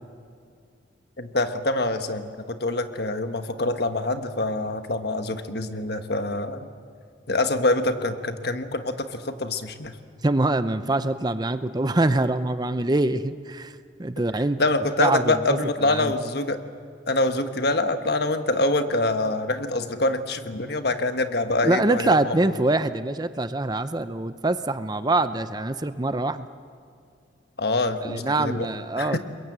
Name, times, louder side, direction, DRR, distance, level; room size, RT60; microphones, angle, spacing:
voice 1, 1.2-6.7 7.3-10.0 14.6-16.6 17.1-22.5 27.6-28.7 29.0-29.2, left 2 dB, 55° left, 8 dB, 1.4 m, -25 dB
voice 2, 10.2-13.7 14.0-14.6 15.0-15.6 15.9-16.1 21.6-26.5 28.0-29.2, right 2 dB, 20° right, 11 dB, 0.6 m, -24 dB
30.0 x 22.0 x 8.1 m, 2.3 s
head